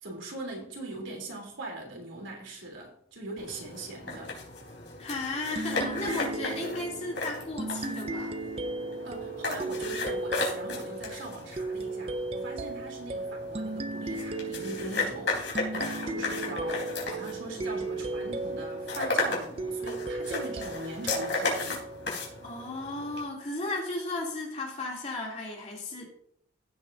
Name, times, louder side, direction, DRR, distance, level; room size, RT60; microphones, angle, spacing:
voice 1, 0.0-4.4 9.0-21.9, right 2 dB, 75° right, 0 dB, 3.6 m, -41 dB
sound 1, 3.4-23.2, left 3 dB, 65° left, 4.3 m, -36 dB
voice 2, 5.0-8.3 22.4-26.0, left 2 dB, 35° left, -2 dB, 3.1 m, -35 dB
sound 2, 5.6-22.7, right 2 dB, 30° right, 0.5 m, -36 dB
15.5 x 8.1 x 2.8 m, 0.67 s
head